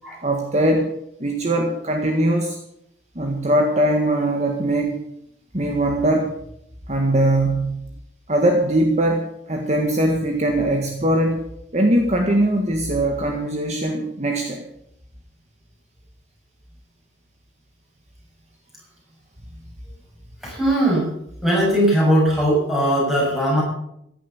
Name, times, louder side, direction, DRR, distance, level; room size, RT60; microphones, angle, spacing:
voice 1, 0.2-0.9 1.2-2.6 3.1-5.0 5.5-6.3 6.9-7.8 8.3-11.4 11.7-14.6, right 1 dB, 35° right, 2 dB, 1.7 m, -21 dB
voice 2, 20.4-21.1 21.4-23.6, right 1 dB, ahead, -4 dB, 6.8 m, -19 dB
15.5 x 10.5 x 7.1 m, 0.76 s
head